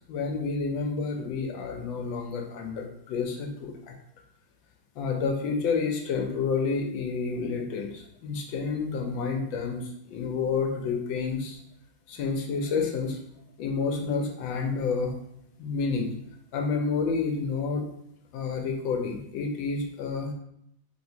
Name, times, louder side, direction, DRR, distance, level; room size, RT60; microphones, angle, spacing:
voice 1, 0.1-3.9 5.0-11.6 12.1-13.2 13.6-15.1 15.6-16.1 16.5-17.9 18.3-20.3, left 5 dB, 90° left, 2 dB, 1.3 m, -29 dB
3.6 x 2.8 x 2.7 m, 0.72 s
omnidirectional pair, 2.0 m